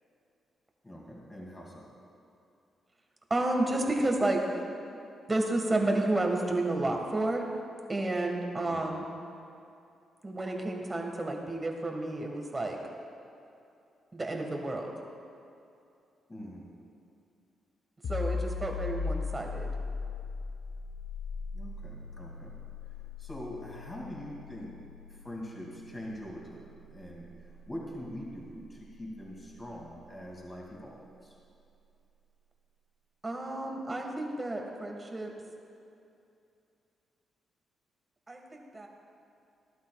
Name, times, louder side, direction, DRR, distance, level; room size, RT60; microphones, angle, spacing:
voice 1, 0.8-1.9 8.7-8.9 16.3-16.7 21.5-22.6 23.2-24.8 25.1-31.3, equal, 15° left, -3 dB, 2.4 m, -43 dB
voice 2, 3.3-4.6 5.3-7.5 7.9-9.0 10.2-12.8 14.1-14.9 18.1-19.7 33.2-35.3 38.3-38.9, right 2 dB, 20° right, 1 dB, 1.6 m, -31 dB
sound 1, 18.0-29.5, left 5 dB, 65° left, 1.0 m, -39 dB
19.0 x 11.5 x 2.4 m, 2.6 s
cardioid pair, 120°, 0 cm